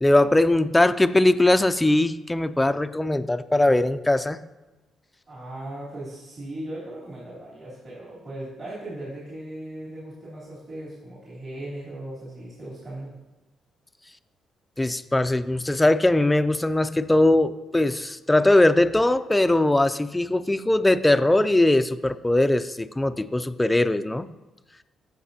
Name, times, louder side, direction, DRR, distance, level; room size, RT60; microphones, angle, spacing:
voice 1, 0.0-4.4 14.8-24.3, left 1 dB, 10° left, 11 dB, 0.4 m, -20 dB
voice 2, 5.3-13.1, right 1 dB, 45° right, -8 dB, 3.4 m, -38 dB
16.0 x 5.9 x 2.8 m, 1.1 s
cardioid pair, 90°, 0 cm